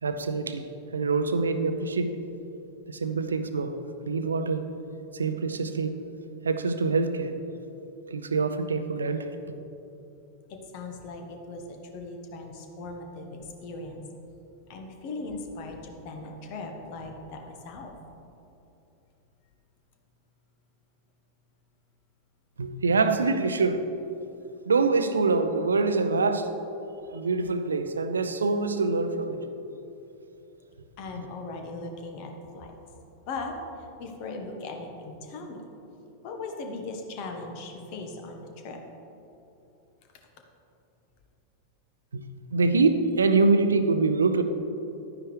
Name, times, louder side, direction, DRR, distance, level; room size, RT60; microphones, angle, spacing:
voice 1, 0.0-0.7 0.9-2.1 2.9-3.8 4.0-4.6 5.1-5.9 6.4-7.3 8.1-9.3 22.6-23.8 24.7-26.5 27.1-29.4 42.1-42.2 42.5-44.4, right 4 dB, 70° right, 9 dB, 0.6 m, -25 dB
voice 2, 10.5-14.0 14.7-18.0 31.0-32.7 33.3-35.6 36.2-38.8 40.1-40.3, left 3 dB, 45° left, 4 dB, 1.2 m, -39 dB
11.0 x 9.7 x 3.3 m, 2.9 s
figure-of-eight pair, 90°, 0 cm